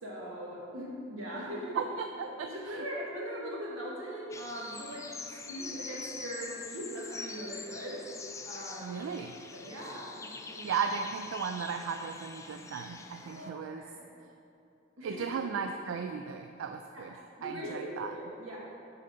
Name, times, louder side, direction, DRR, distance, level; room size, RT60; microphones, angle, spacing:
voice 1, 0.0-1.8 2.2-5.1 5.3-8.0 8.4-9.0 9.5-10.7 13.2-14.1 15.0-15.3 16.9-17.1 17.4-18.6, equal, 85° right, -5 dB, 1.9 m, -40 dB
voice 2, 1.8-2.5 8.8-9.3 10.6-13.8 15.0-17.1 17.4-18.1, right 6 dB, 65° right, 6 dB, 0.3 m, -35 dB
sound 1, 4.3-13.5, left 4 dB, 15° left, 0.4 m, -45 dB
8.6 x 4.3 x 5.2 m, 2.7 s
head